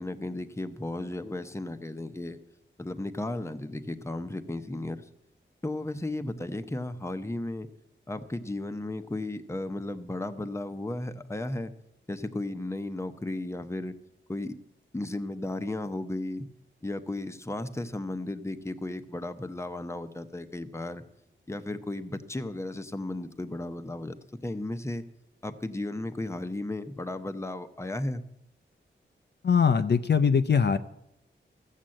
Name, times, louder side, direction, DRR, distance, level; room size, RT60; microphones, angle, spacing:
voice 1, 0.0-2.4 2.8-5.0 5.6-7.7 8.1-11.7 12.1-13.9 14.3-14.6 14.9-16.5 16.8-21.0 21.5-24.2 24.4-25.1 25.4-28.2, left 2 dB, 15° left, 9 dB, 0.8 m, -34 dB
voice 2, 29.4-30.8, left 6 dB, 60° left, 10 dB, 0.6 m, -22 dB
14.5 x 7.4 x 7.6 m, 0.80 s
wide cardioid pair, 105°, 20 cm